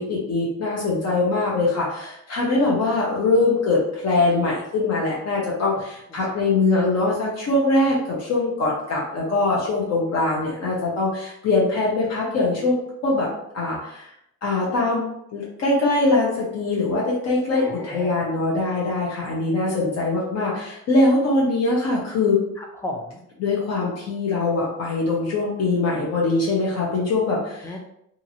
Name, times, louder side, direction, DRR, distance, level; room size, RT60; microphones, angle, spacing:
voice 1, 0.0-12.8 13.0-13.3 13.5-14.1 14.4-22.4 23.4-27.7, left 2 dB, 50° left, -4 dB, 0.8 m, -22 dB
voice 2, 17.5-18.2 22.6-23.2 27.6-27.8, left 1 dB, 10° left, 2 dB, 0.4 m, -34 dB
2.8 x 2.6 x 2.7 m, 0.77 s
cardioid pair, 125°, 33 cm